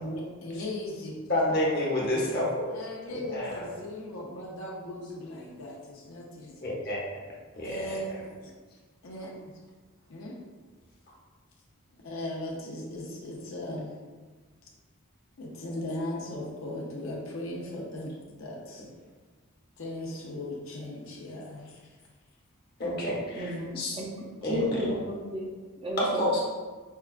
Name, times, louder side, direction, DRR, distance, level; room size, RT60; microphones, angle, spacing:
voice 1, 0.0-2.3 2.7-6.7 7.6-8.5 9.0-9.5 10.1-10.4 11.9-13.9 15.4-18.8 19.8-21.8, left 1 dB, 70° left, -2 dB, 0.6 m, -38 dB
voice 2, 1.3-2.7 3.1-3.7 6.6-7.0 7.6-8.0 22.8-23.4 23.8-23.9 24.4-24.7 26.0-26.4, left 1 dB, 45° left, -5 dB, 1.0 m, -29 dB
voice 3, 23.3-26.4, equal, 25° right, -3 dB, 0.5 m, -34 dB
5.4 x 2.2 x 2.4 m, 1.4 s
head